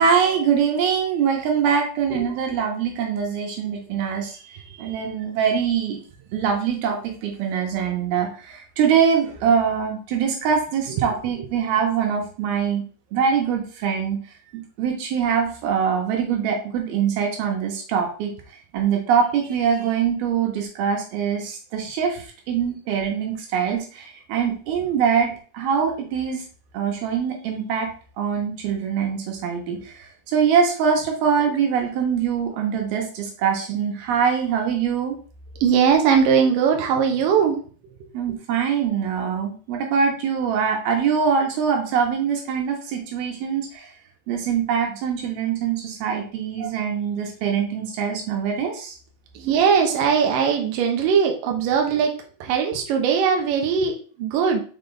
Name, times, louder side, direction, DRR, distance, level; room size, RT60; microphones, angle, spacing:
voice 1, 0.0-4.4 4.8-6.0 6.3-12.8 13.1-14.2 14.8-18.3 18.7-26.4 26.7-27.9 28.2-35.2 38.1-43.9 44.3-48.9, right 7 dB, 90° right, 2 dB, 3.2 m, -23 dB
voice 2, 35.6-37.6 49.4-52.1 52.4-54.6, right 6 dB, 75° right, 3 dB, 2.5 m, -20 dB
6.1 x 5.2 x 3.4 m, 0.41 s
omnidirectional pair, 4.2 m